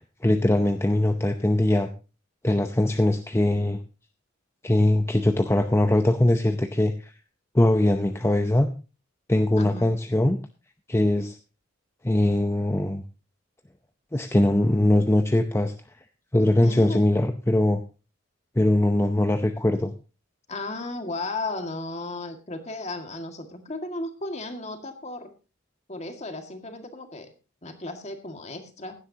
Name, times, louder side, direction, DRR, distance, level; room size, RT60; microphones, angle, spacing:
voice 1, 0.0-1.9 2.4-3.8 4.6-7.1 7.5-8.7 9.3-10.4 10.9-11.4 12.0-13.0 14.1-15.7 16.3-17.8 18.6-19.9, left 1 dB, 15° left, 6 dB, 0.7 m, -21 dB
voice 2, 9.6-9.9 16.6-17.0 20.5-25.3 25.9-27.3 27.6-29.0, left 2 dB, 35° left, 6 dB, 1.9 m, -34 dB
16.5 x 11.5 x 2.8 m, 0.32 s
head